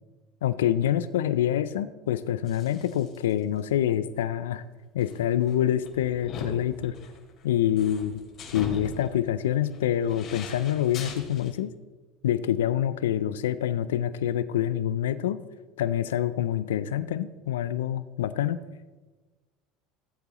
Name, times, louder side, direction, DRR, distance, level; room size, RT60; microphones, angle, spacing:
voice 1, 0.4-4.6 4.9-7.0 7.4-8.2 8.5-11.7 12.2-15.4 15.8-18.6, left 11 dB, 90° left, 14 dB, 0.4 m, -26 dB
sound 1, 2.5-3.3 3.6-3.7 5.0-11.5, left 4 dB, 50° left, 3.0 m, -41 dB
16.5 x 8.2 x 3.0 m, 1.2 s
hypercardioid pair, 85°, 0 cm